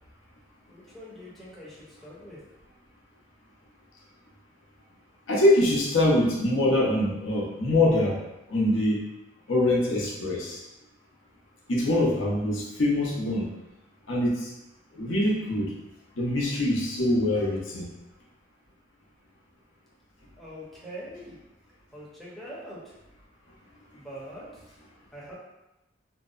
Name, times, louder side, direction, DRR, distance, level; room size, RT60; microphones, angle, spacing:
voice 1, 0.7-2.4 20.4-21.4 21.9-22.9 23.9-24.6 25.1-25.3, equal, ahead, -7 dB, 0.5 m, -43 dB
voice 2, 5.3-8.2 8.5-9.0 9.5-10.6 11.7-13.5 14.1-14.5 14.9-15.7 16.2-17.9, left 1 dB, 85° left, -4 dB, 0.6 m, -24 dB
2.6 x 2.0 x 2.3 m, 0.94 s
head